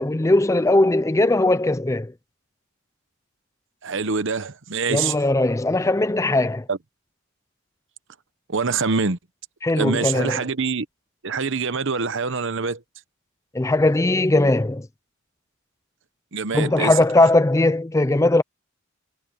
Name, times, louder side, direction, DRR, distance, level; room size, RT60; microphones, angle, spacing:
voice 1, 0.0-2.1 4.9-6.6 9.6-10.4 13.5-14.9 16.5-18.4, left 2 dB, 15° left, 0.4 m, -19 dB
voice 2, 3.8-5.2 6.7-6.8 8.5-9.2 9.8-10.9 11.2-12.8 16.3-16.9, right 4 dB, 55° right, 0.9 m, -25 dB
head